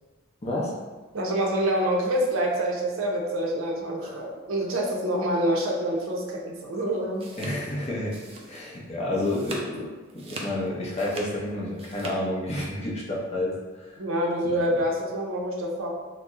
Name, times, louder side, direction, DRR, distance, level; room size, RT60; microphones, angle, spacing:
voice 1, 0.4-0.7 4.0-4.2 7.4-8.2 8.5-14.0 14.4-14.7, left 1 dB, 30° left, -4 dB, 0.5 m, -30 dB
voice 2, 1.1-7.3 14.0-15.9, right 1 dB, 90° right, -1 dB, 0.6 m, -26 dB
sound 1, 6.9-8.8 9.1-9.7 10.1-12.2, right 2 dB, 30° right, 0.3 m, -40 dB
2.7 x 2.0 x 3.5 m, 1.3 s
head